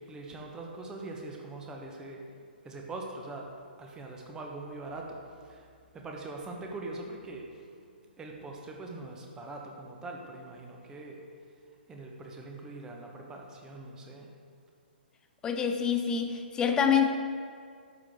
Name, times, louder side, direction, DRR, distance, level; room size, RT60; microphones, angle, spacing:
voice 1, 0.0-2.2 2.6-3.5 3.8-5.7 5.9-7.9 8.2-11.2 11.9-14.3, right 2 dB, 10° right, 0 dB, 1.1 m, -42 dB
voice 2, 15.4-17.1, left 7 dB, 10° left, 6 dB, 0.6 m, -26 dB
11.0 x 7.6 x 3.7 m, 2.2 s
figure-of-eight pair, 125°, 6 cm